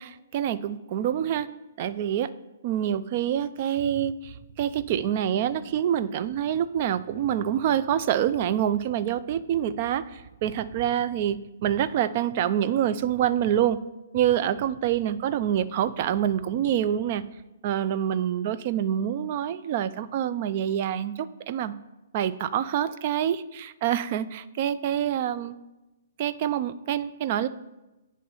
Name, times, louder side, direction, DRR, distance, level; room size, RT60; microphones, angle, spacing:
voice 1, 0.0-1.5 1.8-2.3 2.6-13.8 14.1-17.2 17.6-21.8 22.1-25.5 26.2-27.5, right 10 dB, 35° right, 13 dB, 0.3 m, -26 dB
9.3 x 3.1 x 5.4 m, 1.0 s
hypercardioid pair, 165°, 0 cm